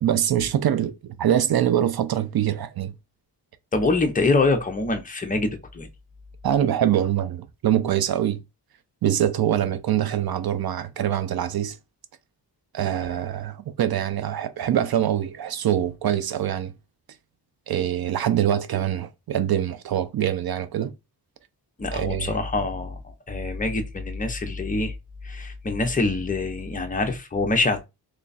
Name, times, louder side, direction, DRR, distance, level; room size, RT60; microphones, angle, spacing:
voice 1, 0.0-2.9 6.4-8.4 9.0-11.8 12.7-16.7 17.7-20.9 21.9-22.5, right 10 dB, 60° right, 0.5 m, -24 dB
voice 2, 3.7-5.9 21.8-23.0 23.3-24.9 25.2-27.9, left 3 dB, 20° left, 0.6 m, -25 dB
3.3 x 2.3 x 3.9 m
wide cardioid pair, 140°, 41 cm